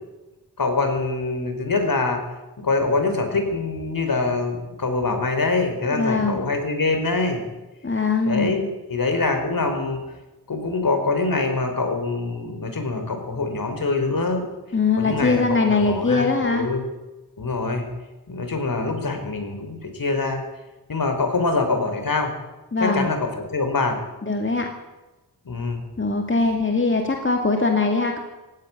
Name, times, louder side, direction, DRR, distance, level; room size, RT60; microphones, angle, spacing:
voice 1, 0.6-2.2 2.6-7.4 8.3-10.0 10.5-14.4 15.0-15.4 15.7-16.8 17.4-17.8 18.3-20.4 20.9-22.3 22.8-24.0 25.5-25.8, left 3 dB, 55° left, 6 dB, 4.5 m, -24 dB
voice 2, 5.9-6.4 7.8-8.6 14.7-16.7 22.7-23.1 24.2-24.7 26.0-28.2, left 3 dB, 30° left, 3 dB, 2.3 m, -21 dB
17.0 x 16.5 x 9.7 m, 1.1 s
wide cardioid pair, 95°, 39 cm